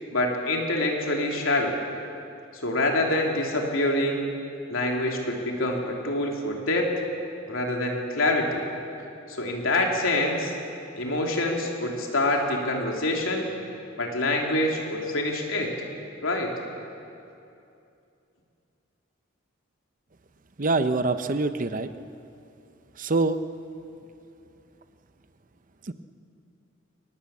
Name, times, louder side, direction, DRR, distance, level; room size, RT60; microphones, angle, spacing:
voice 1, 0.1-1.8 2.6-4.3 4.7-6.9 7.5-8.7 9.3-10.5 11.0-13.5 14.0-15.7 16.2-16.5, left 1 dB, 85° left, 0 dB, 3.3 m, -26 dB
voice 2, 20.6-21.9 23.0-23.4 25.9-26.0, right 3 dB, 40° right, 10 dB, 0.8 m, -24 dB
23.5 x 19.0 x 7.3 m, 2.7 s
head